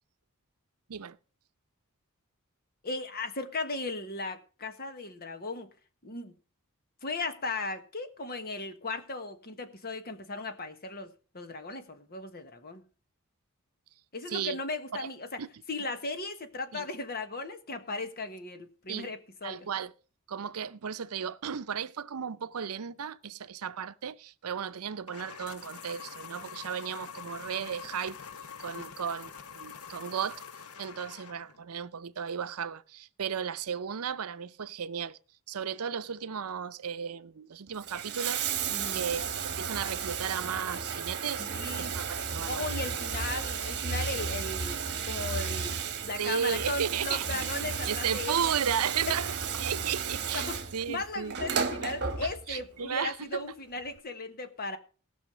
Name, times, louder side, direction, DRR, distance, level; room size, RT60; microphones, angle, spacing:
voice 1, 2.8-5.7 6.0-6.3 7.0-12.8 14.1-15.4 15.7-19.7 28.7-28.8 38.7-39.0 41.4-41.9 42.4-48.4 49.0-49.1 50.3-50.6 50.9-54.8, left 3 dB, 45° left, 1.4 m, -37 dB
voice 2, 19.4-19.9 20.3-28.2 28.6-30.4 30.8-35.2 35.5-38.5 38.9-41.5 41.8-42.7 43.6-43.7 46.2-47.2 47.8-51.4 51.8-51.9 52.2-53.4, right 7 dB, 85° right, 0.6 m, -34 dB
sound 1, 25.1-31.6, left 7 dB, 80° left, 0.9 m, -45 dB
Bathtub (filling or washing), 37.7-52.7 53.8-53.9, right 6 dB, 50° right, 1.5 m, -34 dB
18.0 x 6.3 x 5.0 m
head